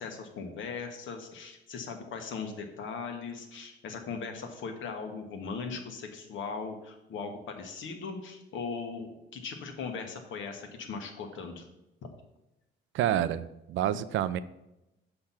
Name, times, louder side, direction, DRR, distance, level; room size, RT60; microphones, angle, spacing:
voice 1, 0.0-11.6, left 5 dB, 75° left, 4 dB, 1.3 m, -39 dB
voice 2, 12.9-14.4, right 11 dB, 75° right, 15 dB, 0.5 m, -28 dB
6.7 x 4.4 x 5.7 m, 0.92 s
cardioid pair, 90°, 20 cm